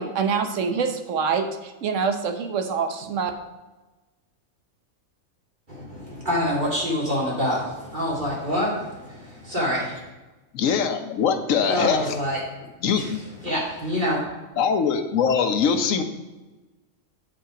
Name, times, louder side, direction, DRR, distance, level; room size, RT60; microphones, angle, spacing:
voice 1, 0.0-3.3, right 5 dB, 75° right, 6 dB, 1.2 m, -25 dB
voice 2, 5.7-10.0 11.7-12.7 12.9-14.2, equal, 40° right, -6 dB, 2.8 m, -26 dB
voice 3, 10.5-12.1 12.8-13.2 14.6-16.0, left 6 dB, 85° left, 8 dB, 1.2 m, -22 dB
7.8 x 5.4 x 4.9 m, 1.1 s
omnidirectional pair, 1.3 m